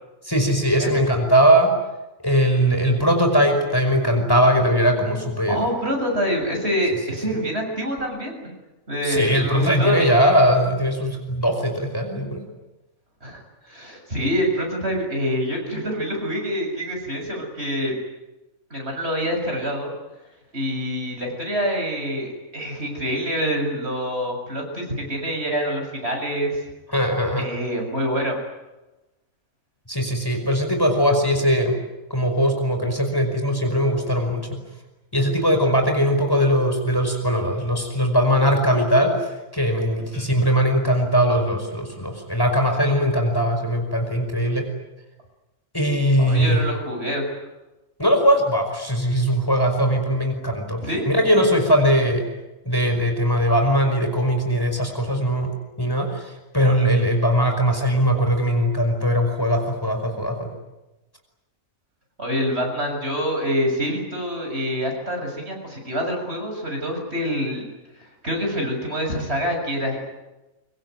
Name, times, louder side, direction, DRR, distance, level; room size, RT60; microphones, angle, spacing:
voice 1, 0.3-1.8 2.2-5.6 9.1-12.5 26.9-27.5 29.9-31.8 32.1-34.6 35.1-39.2 39.5-44.7 45.7-46.6 48.0-52.3 52.7-55.5 55.8-60.5, equal, 15° left, 4 dB, 5.3 m, -20 dB
voice 2, 5.5-8.5 8.9-10.1 13.2-17.9 18.7-19.9 20.5-26.6 27.4-28.4 40.1-40.3 46.2-47.4 50.8-51.1 62.2-67.6 68.2-70.2, equal, 50° right, 2 dB, 7.4 m, -26 dB
24.5 x 24.0 x 9.5 m, 1.0 s
omnidirectional pair, 1.4 m